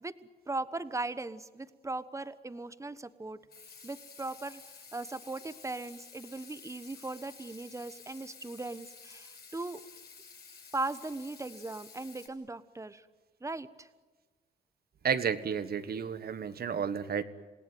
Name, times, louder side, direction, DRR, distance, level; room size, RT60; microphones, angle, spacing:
voice 1, 0.5-3.4 3.8-4.6 4.9-9.8 10.7-13.1 13.4-13.9, right 2 dB, 15° right, 13 dB, 1.2 m, -38 dB
Water tap faucet / Sink (filling or washing), 3.5-12.3, left 5 dB, 55° left, 6.7 m, -52 dB
voice 2, 15.0-17.2, right 7 dB, 50° right, 11 dB, 1.5 m, -32 dB
28.0 x 18.0 x 9.3 m, 1.3 s
cardioid pair, 90°, 20 cm